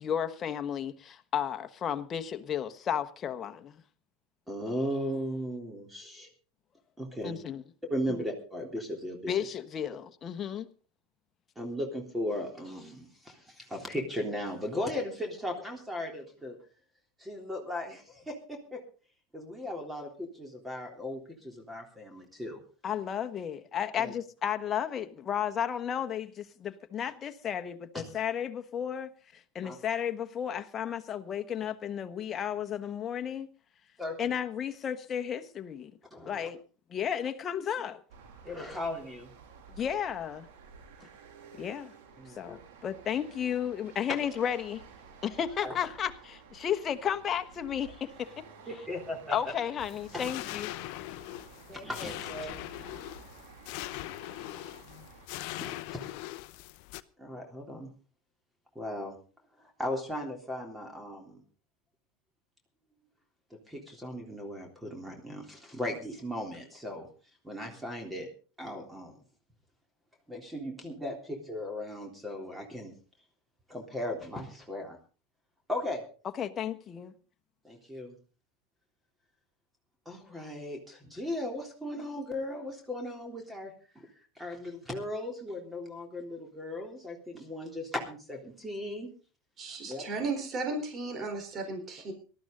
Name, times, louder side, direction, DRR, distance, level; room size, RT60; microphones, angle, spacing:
voice 1, 0.0-3.8 7.2-7.6 9.3-10.7 22.8-29.1 29.5-33.5 34.2-35.9 36.3-36.6 36.9-38.0 39.8-40.5 41.6-41.9 42.4-44.8 45.2-48.3 49.3-50.7 76.4-77.1, left 9 dB, 35° left, 1.3 m, -33 dB
voice 2, 4.5-6.3 7.0-7.4 7.9-9.4 11.6-16.6 17.2-18.8 19.3-22.6 24.0-24.1 29.6-29.8 34.0-34.4 36.1-36.5 38.4-39.3 42.2-42.6 45.6-45.8 48.7-49.5 50.1-50.3 51.7-52.6 55.6-56.0 57.2-57.9 58.8-59.2 59.6-61.4 63.5-67.1 67.4-68.3 68.6-69.2 70.3-72.9 73.7-75.0 75.7-76.0 77.6-78.1 80.1-84.1 84.4-89.1 89.7-90.1, left 1 dB, 10° right, 3.5 m, -37 dB
sound 1, 38.1-55.3, right 6 dB, 70° right, 2.9 m, -53 dB
sound 2, 49.8-57.0, left 18 dB, 65° left, 0.7 m, -41 dB
voice 3, 89.6-92.1, right 3 dB, 40° right, 4.1 m, -35 dB
18.5 x 13.0 x 3.9 m
hypercardioid pair, 90°, 0 cm